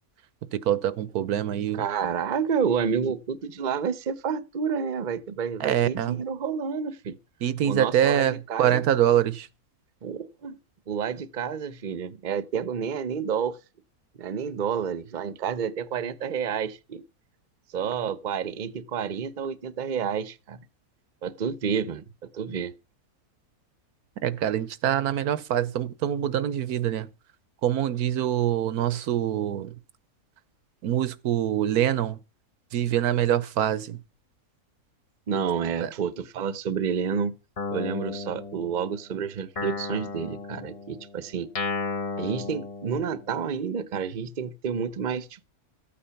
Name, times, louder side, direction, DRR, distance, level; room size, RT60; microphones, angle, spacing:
voice 1, 0.5-1.8 5.6-6.2 7.4-9.5 24.2-27.1 27.6-29.7 30.8-32.2 32.7-34.0 35.8-35.9, right 10 dB, 85° right, 1.4 m, -25 dB
voice 2, 1.7-7.2 7.6-8.8 10.0-10.6 10.9-13.6 14.2-17.0 17.7-20.6 21.2-22.0 22.3-22.7 35.3-37.3 37.7-41.5 42.2-45.4, right 7 dB, 40° right, 0.8 m, -29 dB
Guitar, 37.6-39.1 39.6-43.4, left 4 dB, 30° left, 0.8 m, -34 dB
14.0 x 8.7 x 5.8 m
omnidirectional pair, 1.6 m